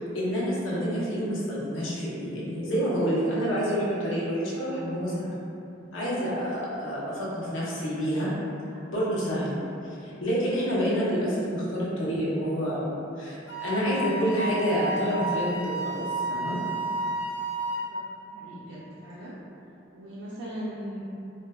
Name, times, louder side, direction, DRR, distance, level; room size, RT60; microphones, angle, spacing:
voice 1, 0.0-5.3 5.9-8.3 8.9-9.5 10.0-16.6, equal, 90° left, -7 dB, 0.8 m, -28 dB
Wind instrument woodwind instrument, 13.5-17.9, right 2 dB, 60° left, 0.4 m, -31 dB
voice 2, 17.8-19.4 19.9-21.0, equal, 70° right, -8 dB, 0.4 m, -39 dB
3.8 x 2.2 x 2.2 m, 2.8 s
head